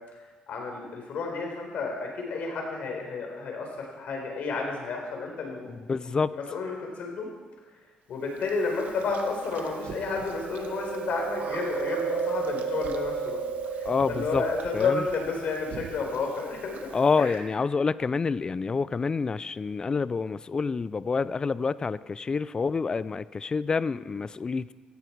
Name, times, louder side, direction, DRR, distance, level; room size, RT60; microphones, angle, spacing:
voice 1, 0.5-5.7 5.9-7.3 8.1-13.4 13.8-16.8 17.2-17.3, left 4 dB, 65° left, 1 dB, 4.4 m, -31 dB
voice 2, 5.7-6.3 13.8-14.4 14.7-15.0 16.9-24.7, left 4 dB, 30° left, 18 dB, 0.5 m, -27 dB
Chewing mastication, 8.4-17.4, right 5 dB, 65° right, 1.4 m, -34 dB
17.5 x 15.0 x 4.7 m, 1.3 s
cardioid pair, 110°, 3 cm